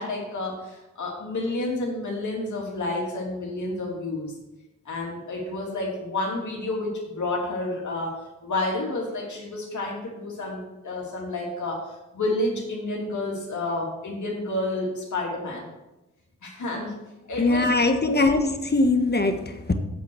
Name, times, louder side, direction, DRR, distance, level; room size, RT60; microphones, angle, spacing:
voice 1, 0.0-4.3 4.8-15.7 16.4-16.9 17.3-17.7 18.0-18.3, left 2 dB, 65° left, -2 dB, 3.1 m, -30 dB
voice 2, 17.4-19.7, left 2 dB, 30° left, 7 dB, 1.5 m, -21 dB
8.3 x 7.5 x 6.3 m, 0.99 s
supercardioid pair, 40°, 31 cm